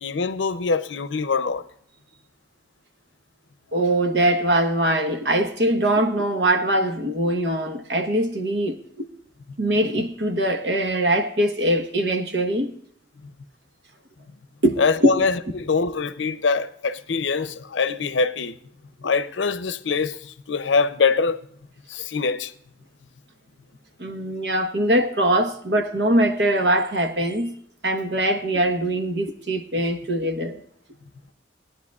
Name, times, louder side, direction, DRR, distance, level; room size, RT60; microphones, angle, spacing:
voice 1, 0.0-1.6 14.8-18.6 19.0-21.4 21.9-22.5, left 4 dB, 90° left, 0.6 m, -23 dB
voice 2, 3.7-9.1 9.6-12.7 14.6-15.1 24.0-27.6 27.8-30.6, right 1 dB, 65° right, 1.2 m, -22 dB
18.5 x 10.0 x 2.4 m
head